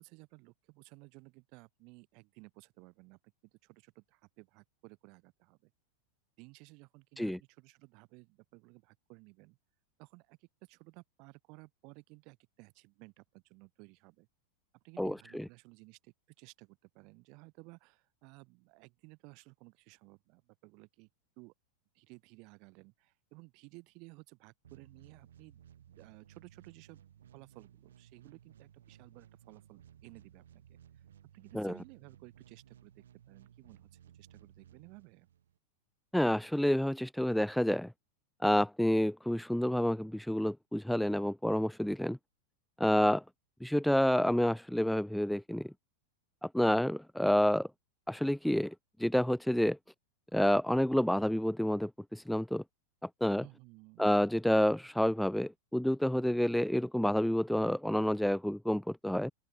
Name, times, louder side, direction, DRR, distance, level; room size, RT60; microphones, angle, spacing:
voice 1, 0.0-5.7 6.4-9.6 10.0-14.3 14.7-21.1 21.4-21.5 21.9-25.6 25.9-27.0 27.3-31.0 31.3-35.3 53.4-54.3, right 28 dB, 45° right, 6.8 m, -56 dB
sound 1, 24.6-35.6, right 10 dB, 65° right, 5.7 m, -59 dB
voice 2, 36.1-37.9 38.4-42.2 42.8-43.2 43.6-45.7 46.4-47.7 48.1-48.7 49.0-49.8 50.3-52.6 53.2-53.4 54.0-59.3, equal, ahead, 0.4 m, -29 dB
open air
figure-of-eight pair, 90°, 0 cm